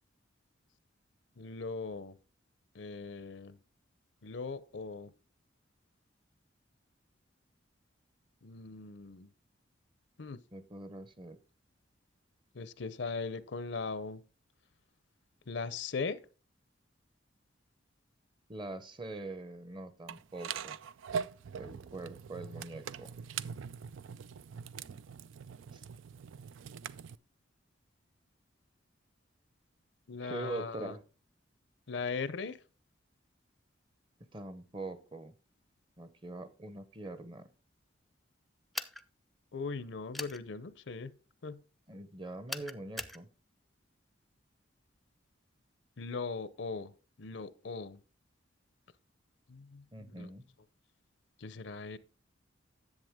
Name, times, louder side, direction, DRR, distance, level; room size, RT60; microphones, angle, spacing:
voice 1, 1.4-2.2 2.7-3.6 4.2-5.1 8.4-9.3 10.2-10.4 12.5-14.2 15.5-16.2 30.1-30.9 31.9-32.6 39.5-41.1 41.4-41.6 46.0-46.9 47.2-48.0 49.5-50.3 51.4-52.0, left 4 dB, 65° left, 0.6 m, -39 dB
voice 2, 10.5-11.4 18.5-20.8 21.6-23.1 25.7-25.8 30.2-31.0 34.3-35.3 36.0-37.5 41.9-43.3 49.9-50.5, right 2 dB, 25° right, 0.8 m, -43 dB
sound 1, 20.1-27.2, right 7 dB, 85° right, 0.4 m, -42 dB
sound 2, 38.7-39.0 40.1-40.4 42.5-43.2, left 1 dB, ahead, 0.4 m, -39 dB
10.5 x 7.7 x 3.6 m
head